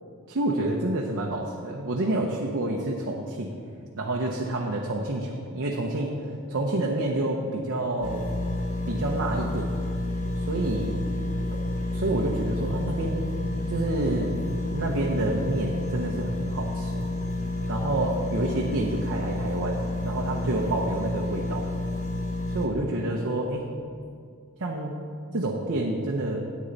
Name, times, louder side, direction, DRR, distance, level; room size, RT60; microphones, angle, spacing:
voice 1, 0.3-3.5 4.0-6.2 6.5-8.2 8.9-9.7 10.4-10.9 11.5-11.6 11.9-13.2 13.7-14.4 14.7-17.1 17.7-21.7 22.5-23.7 24.6-25.0 25.3-26.4, right 2 dB, 60° right, -1 dB, 0.8 m, -28 dB
sound 1, 8.0-22.7, left 1 dB, 35° left, 1.1 m, -30 dB
9.7 x 8.5 x 4.0 m, 2.3 s
head